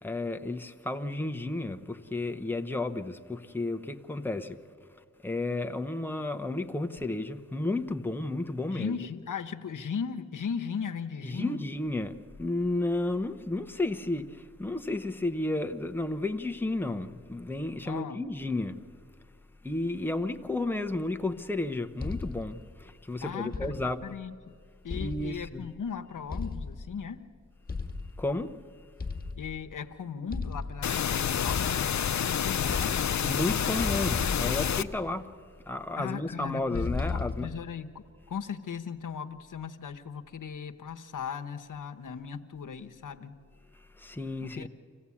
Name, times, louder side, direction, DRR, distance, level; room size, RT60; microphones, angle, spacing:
voice 1, 0.0-4.6 4.9-9.0 11.2-18.8 19.6-24.2 24.9-25.6 28.2-28.6 33.2-35.3 35.7-37.5 43.7-44.7, left 2 dB, 5° left, 0.9 m, -32 dB
voice 2, 8.7-11.6 17.9-18.2 23.2-23.7 24.0-24.6 24.8-27.2 29.4-33.0 36.0-43.3 44.4-44.7, left 6 dB, 80° left, 1.0 m, -37 dB
sound 1, 22.0-22.6 23.5-24.1 24.9-25.7 26.3-27.1 27.7-28.3 29.0-29.8 30.3-31.0 31.5-32.3 32.6-33.4 33.8-35.3 36.7-37.7, left 4 dB, 30° left, 1.5 m, -36 dB
sound 2, 30.8-34.8, left 8 dB, 60° left, 0.6 m, -28 dB
26.5 x 15.5 x 8.5 m
cardioid pair, 65°, 32 cm